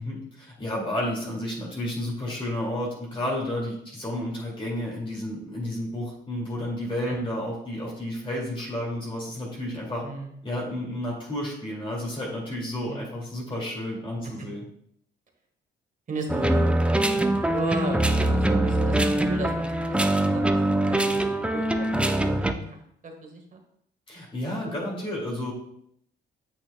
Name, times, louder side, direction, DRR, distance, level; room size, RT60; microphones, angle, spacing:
voice 1, 0.0-10.0 10.4-14.6 24.1-25.5, left 1 dB, 25° left, -4 dB, 2.2 m, -31 dB
voice 2, 10.0-10.4 12.9-13.1 14.2-14.5 16.1-16.7 17.1-23.6, right 2 dB, 40° right, 3 dB, 1.5 m, -35 dB
sound 1, 16.3-22.5, right 1 dB, 5° right, 0.5 m, -23 dB
8.8 x 6.1 x 2.2 m, 0.72 s
cardioid pair, 90°, 20 cm